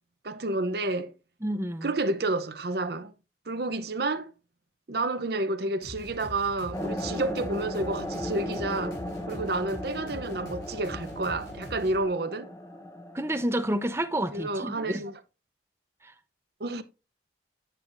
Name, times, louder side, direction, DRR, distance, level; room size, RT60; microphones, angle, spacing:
voice 1, 0.2-1.1 1.8-3.1 3.5-4.3 4.9-9.0 9.3-12.5 14.3-15.2 16.6-16.8, right 2 dB, 55° right, 0.8 m, -30 dB
voice 2, 1.4-1.9 13.1-15.0 16.0-16.1, right 1 dB, 15° right, 0.7 m, -29 dB
sound 1, 5.8-12.0, left 1 dB, 70° left, 5.6 m, -44 dB
sound 2, 6.7-14.7, left 1 dB, 15° left, 0.9 m, -37 dB
9.0 x 7.9 x 2.6 m
head